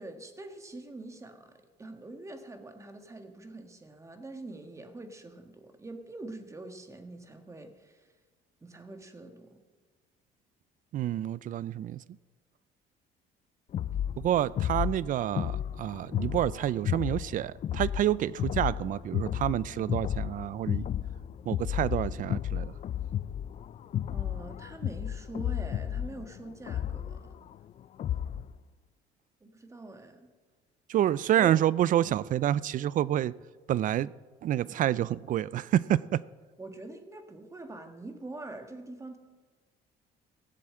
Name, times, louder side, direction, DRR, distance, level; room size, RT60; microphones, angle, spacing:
voice 1, 0.0-1.5 1.8-8.1 8.6-9.6 24.1-27.3 29.4-30.3 31.4-31.5 36.6-39.2, right 2 dB, 15° right, 6 dB, 1.6 m, -44 dB
voice 2, 10.9-12.0 14.2-20.9 21.5-22.7 30.9-33.3 33.7-34.1 34.4-36.2, right 12 dB, 50° right, 20 dB, 0.4 m, -28 dB
sound 1, 13.7-28.5, left 10 dB, 45° left, 0.4 m, -33 dB
16.5 x 7.6 x 7.7 m, 1.4 s
cardioid pair, 110°, 17 cm